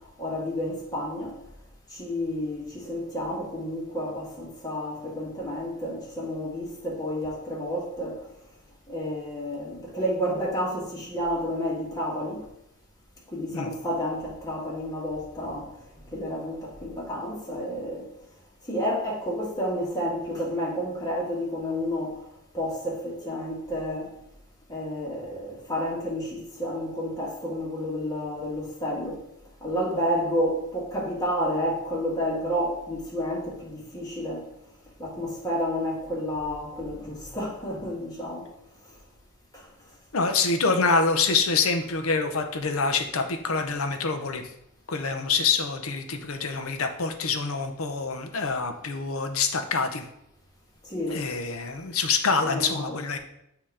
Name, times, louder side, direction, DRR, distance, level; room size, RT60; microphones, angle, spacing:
voice 1, 0.2-1.4 1.9-8.2 8.9-12.4 13.3-15.7 16.1-18.1 18.7-22.2 22.5-24.1 24.7-29.2 29.6-34.4 35.0-38.5 39.5-39.6 50.8-51.2 52.4-53.0, equal, 15° left, -3 dB, 1.6 m, -30 dB
voice 2, 40.1-44.5 44.9-50.0 51.1-53.2, left 4 dB, 70° left, 6 dB, 0.7 m, -26 dB
7.7 x 2.9 x 4.8 m, 0.79 s
head